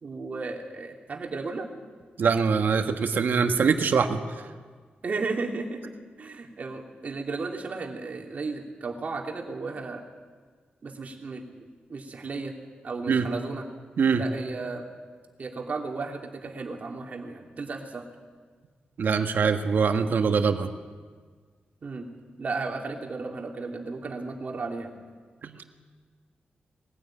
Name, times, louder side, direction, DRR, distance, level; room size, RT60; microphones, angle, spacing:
voice 1, 0.0-1.7 5.0-10.0 10.8-12.5 12.8-13.6 14.1-14.9 15.4-18.0 21.8-22.1 22.4-24.9, right 3 dB, 50° right, 1 dB, 2.9 m, -34 dB
voice 2, 2.2-4.2 13.1-13.3 14.0-14.2 19.0-20.7 25.4-25.6, right 5 dB, 70° right, 6 dB, 1.5 m, -23 dB
21.0 x 15.5 x 8.9 m, 1.5 s
wide cardioid pair, 115°, 3 cm